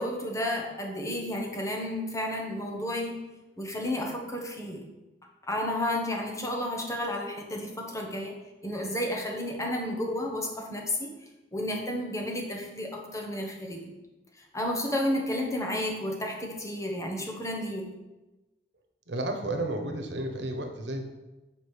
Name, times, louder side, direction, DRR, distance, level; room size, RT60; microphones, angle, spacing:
voice 1, 0.0-3.2 3.6-4.8 5.4-8.4 8.6-11.1 11.5-13.9 14.3-17.9, left 1 dB, 20° left, 0 dB, 1.2 m, -32 dB
voice 2, 19.1-21.0, right 1 dB, 85° right, 5 dB, 1.2 m, -32 dB
7.5 x 5.1 x 4.9 m, 1.1 s
head